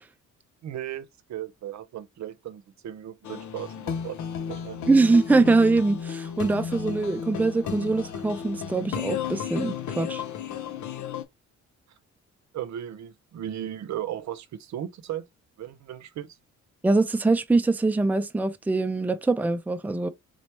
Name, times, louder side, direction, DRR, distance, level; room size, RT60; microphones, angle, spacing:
voice 1, 0.6-4.2 4.5-4.8 12.5-15.2 15.6-16.3, right 11 dB, 65° right, 0.8 m, -36 dB
sound 1, 3.2-11.2, left 8 dB, 70° left, 0.9 m, -34 dB
voice 2, 4.9-10.2 16.8-20.1, right 3 dB, 5° right, 0.5 m, -23 dB
4.1 x 3.2 x 2.9 m
cardioid pair, 90°, 30 cm